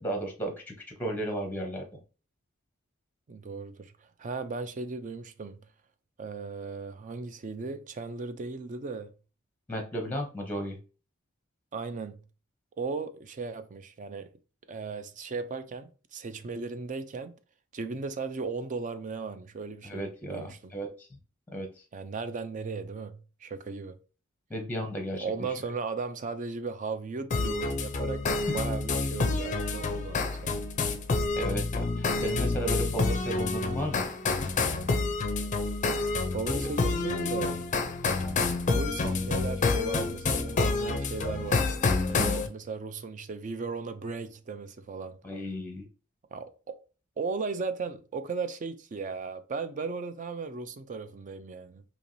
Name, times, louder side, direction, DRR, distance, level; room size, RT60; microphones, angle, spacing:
voice 1, 0.0-1.9 9.7-10.8 19.8-21.2 21.5-21.8 24.5-25.5 31.4-34.1 42.2-42.5 45.2-45.9, equal, 10° left, 0.8 m, -34 dB
voice 2, 3.3-3.9 4.2-5.6 6.2-9.1 11.7-12.2 12.8-14.3 14.7-17.3 17.7-20.7 21.9-24.0 25.2-28.2 28.5-30.6 36.3-37.6 38.6-41.6 42.1-45.2 46.3-46.8 47.2-51.8, right 4 dB, 40° right, 0.4 m, -36 dB
sound 1, 27.3-42.5, left 3 dB, 35° left, 0.5 m, -28 dB
4.6 x 2.9 x 2.7 m
head